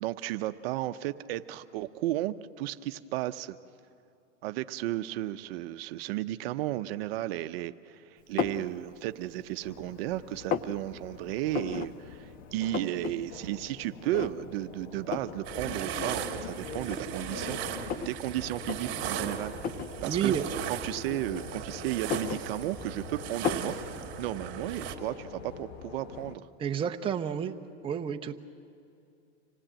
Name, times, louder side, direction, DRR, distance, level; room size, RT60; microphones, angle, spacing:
voice 1, 0.0-3.6 4.4-17.6 18.0-19.8 20.0-20.3 20.7-23.8 24.2-26.5, right 15 dB, 60° right, 10 dB, 0.7 m, -34 dB
sound 1, 8.4-8.7 9.2-9.9 10.2-10.7 11.5-11.9 12.2-12.3 12.5-13.1 13.5-13.6 14.1-14.6 15.1-15.4 16.2-16.3 16.8-18.2 18.6-18.8 19.6-19.9 20.9-21.6 21.9-23.0 23.4-23.8, left 7 dB, 25° left, 0.6 m, -33 dB
sound 2, 9.6-26.3, left 6 dB, 65° left, 1.6 m, -45 dB
sound 3, 15.4-24.9, right 8 dB, 35° right, 2.5 m, -38 dB
voice 2, 20.1-20.4 26.6-27.5 27.8-28.4, right 8 dB, 15° right, 4 dB, 0.8 m, -30 dB
26.0 x 17.5 x 8.9 m, 2.6 s
supercardioid pair, 140°, 34 cm